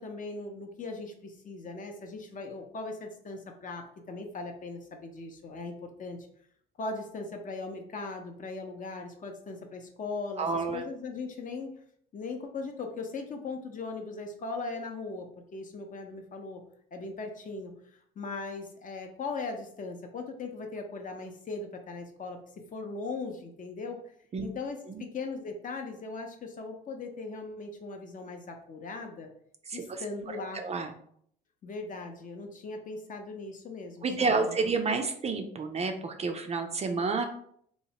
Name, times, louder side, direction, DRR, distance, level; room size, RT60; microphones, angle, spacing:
voice 1, 0.0-6.2 6.8-11.7 12.1-16.6 16.9-17.7 18.2-22.4 22.7-24.0 24.4-29.3 29.7-30.6 31.6-34.7, left 3 dB, 40° left, 4 dB, 0.6 m, -39 dB
voice 2, 10.4-10.8 24.3-24.4 24.9-25.0 29.7-30.0 30.3-30.9 34.0-37.3, right 4 dB, 30° right, 5 dB, 0.4 m, -30 dB
2.9 x 2.1 x 2.8 m, 0.65 s
supercardioid pair, 65°, 21 cm